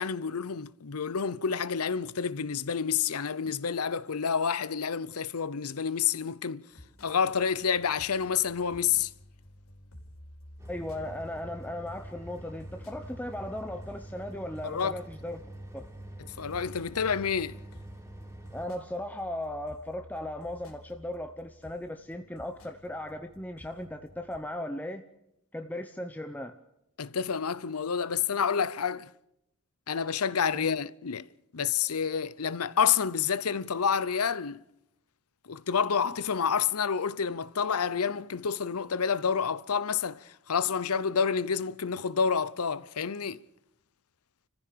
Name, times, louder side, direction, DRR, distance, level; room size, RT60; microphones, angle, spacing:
voice 1, 0.0-6.7 7.0-9.1 14.6-15.0 16.2-17.6 27.0-29.1 29.9-31.3 31.5-34.6 35.4-43.4, left 6 dB, 90° left, 0.7 m, -29 dB
sound 1, 6.7-24.4, left 1 dB, 70° left, 4.7 m, -53 dB
sound 2, 10.6-18.7, right 1 dB, 10° right, 3.2 m, -46 dB
voice 2, 10.7-15.4 15.7-15.9 18.5-25.0 25.5-26.6 30.5-30.7, left 1 dB, 5° left, 0.8 m, -37 dB
29.0 x 15.0 x 6.8 m
head